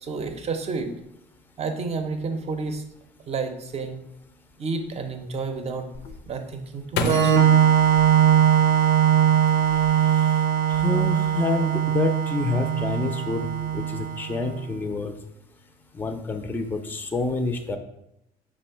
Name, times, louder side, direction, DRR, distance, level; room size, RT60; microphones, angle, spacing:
voice 1, 0.0-0.9 1.6-2.8 3.3-4.0 4.6-5.9 6.2-7.3, right 4 dB, 40° right, 6 dB, 0.6 m, -30 dB
sound 1, 5.9-9.0 9.5-10.3 10.6-11.1, left 7 dB, 75° left, 0.4 m, -34 dB
Organ, 7.0-14.5, right 9 dB, 80° right, 0.7 m, -20 dB
voice 2, 10.0-10.4 10.7-15.1 16.0-17.8, left 3 dB, 10° left, 6 dB, 0.4 m, -28 dB
5.2 x 2.1 x 4.3 m, 0.83 s
cardioid pair, 110°, 17 cm